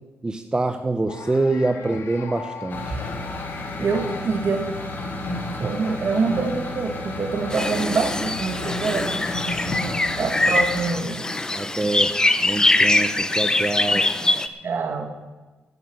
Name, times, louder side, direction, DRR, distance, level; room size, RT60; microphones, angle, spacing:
voice 1, 0.2-3.0 5.6-5.8 9.6-10.0 11.5-14.1, right 2 dB, 20° right, 7 dB, 0.8 m, -26 dB
sound 1, 1.1-5.2, left 6 dB, 90° left, 1.6 m, -40 dB
sound 2, 2.7-10.9, left 2 dB, 50° left, 4.8 m, -32 dB
voice 2, 3.8-4.7 5.6-9.2 10.2-11.2 13.9-14.3 14.6-15.1, right 4 dB, 55° right, 5 dB, 2.1 m, -25 dB
sound 3, 7.5-14.5, left 2 dB, 15° left, 0.8 m, -22 dB
12.0 x 8.5 x 9.4 m, 1.2 s
cardioid pair, 100°, 4 cm